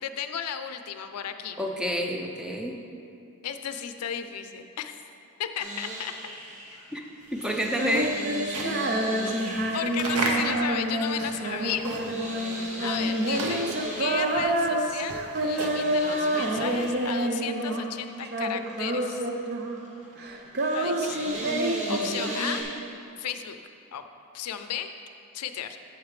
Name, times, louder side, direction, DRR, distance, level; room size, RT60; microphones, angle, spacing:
voice 1, 0.0-1.6 3.4-5.0 5.4-6.1 6.7-6.8 9.2-9.4 9.7-11.9 12.8-13.7 14.0-19.3 20.7-21.3 21.9-22.7 23.2-23.6 23.9-24.0 24.3-24.9 25.3-25.8, left 9 dB, 85° left, 9 dB, 0.4 m, -34 dB
voice 2, 1.6-2.8 6.9-7.0 7.3-8.2 8.6-8.9 13.1-13.2 21.9-22.1, equal, 5° right, 1 dB, 0.5 m, -29 dB
sound 1, 5.6-22.6, right 1 dB, 30° right, 1.1 m, -39 dB
sound 2, 7.3-12.3 12.6-17.1, right 2 dB, 70° right, 0.9 m, -36 dB
Female singing, 7.6-18.0 18.2-19.9 20.2-22.9, right 1 dB, 45° right, 0.6 m, -28 dB
8.0 x 8.0 x 3.3 m, 2.7 s
head